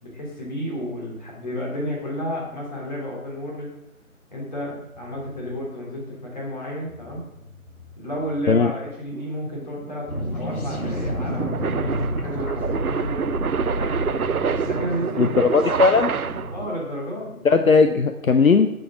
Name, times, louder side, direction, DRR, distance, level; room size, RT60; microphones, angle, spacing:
voice 1, 0.0-3.7 4.3-7.2 8.0-14.1 14.6-15.4 16.5-17.5, equal, 30° left, -4 dB, 3.3 m, -32 dB
sound 1, 4.9-5.5 6.5-6.6 6.9-8.6 10.7-10.8 11.1-12.3 13.0-14.7, left 3 dB, 10° right, 3.2 m, -49 dB
sound 2, 9.1-16.7, right 6 dB, 80° right, 0.6 m, -28 dB
sound 3, 10.1-16.7, equal, 85° left, 2.2 m, -30 dB
voice 2, 15.2-16.1 17.4-18.7, left 4 dB, 70° left, 8 dB, 0.7 m, -17 dB
8.8 x 7.8 x 3.7 m, 0.88 s
figure-of-eight pair, 165°, 43 cm